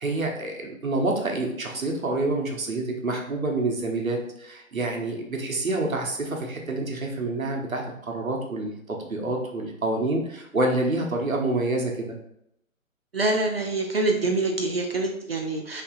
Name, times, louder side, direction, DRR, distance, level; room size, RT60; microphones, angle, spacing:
voice 1, 0.0-12.2, right 2 dB, 70° right, 1 dB, 1.3 m, -27 dB
voice 2, 13.1-15.8, right 2 dB, 45° right, 2 dB, 0.6 m, -25 dB
6.0 x 3.3 x 2.6 m, 0.78 s
figure-of-eight pair, 140°, 42 cm